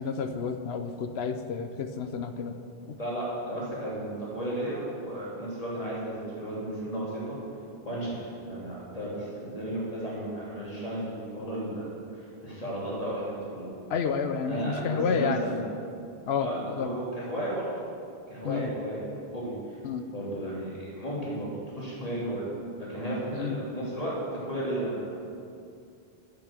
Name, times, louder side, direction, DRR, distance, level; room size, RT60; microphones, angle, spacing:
voice 1, 0.0-2.5 2.9-3.0 13.9-15.4 16.3-16.5 16.8-16.9 18.4-18.7 19.8-20.0 23.3-23.6, left 6 dB, 90° left, 8 dB, 1.0 m, -30 dB
voice 2, 3.0-7.4 7.8-13.7 14.4-15.6 16.4-17.7 18.3-19.8 20.1-22.5 22.8-25.2, right 1 dB, 35° left, -7 dB, 3.3 m, -34 dB
8.8 x 7.7 x 7.4 m, 2.4 s
omnidirectional pair, 1.0 m